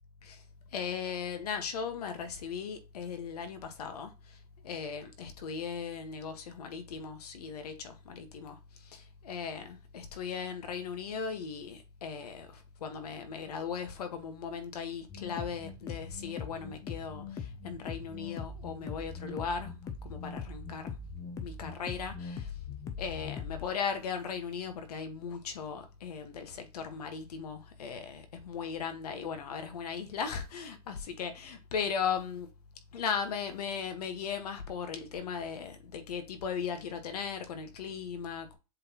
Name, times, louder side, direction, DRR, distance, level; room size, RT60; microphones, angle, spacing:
voice 1, 0.7-4.4 4.6-19.8 20.0-20.9 21.4-22.5 23.0-32.5 32.9-38.6, left 6 dB, 75° left, 1.5 m, -37 dB
sound 1, 15.1-23.7, left 5 dB, 15° left, 0.5 m, -41 dB
7.4 x 4.2 x 3.0 m
hypercardioid pair, 150°, 20 cm